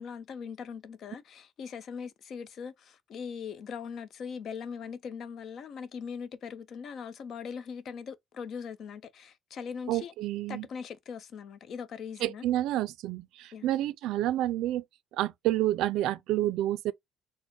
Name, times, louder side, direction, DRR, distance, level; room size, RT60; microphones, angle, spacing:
voice 1, 0.0-10.1 10.5-12.5 13.5-13.7, left 6 dB, 50° left, 0.5 m, -40 dB
voice 2, 9.9-10.7 12.2-14.8 15.1-16.9, right 14 dB, 85° right, 0.3 m, -29 dB
4.1 x 2.0 x 2.8 m
cardioid pair, 150°, 0 cm